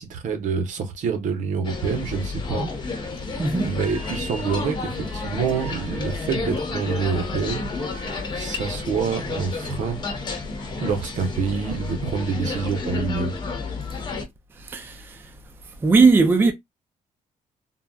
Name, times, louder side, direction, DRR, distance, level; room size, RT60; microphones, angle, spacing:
voice 1, 0.0-2.7 3.6-7.7 8.3-10.0 10.8-13.4, right 5 dB, 70° right, 0.8 m, -27 dB
sound 1, 1.6-14.2, left 3 dB, 35° left, 0.9 m, -31 dB
voice 2, 3.4-3.7 14.6-15.3 15.8-16.5, right 4 dB, 15° right, 0.4 m, -18 dB
sound 2, 3.8-8.9, right 2 dB, 55° right, 1.6 m, -44 dB
3.8 x 2.0 x 2.2 m
cardioid pair, 140°, 13 cm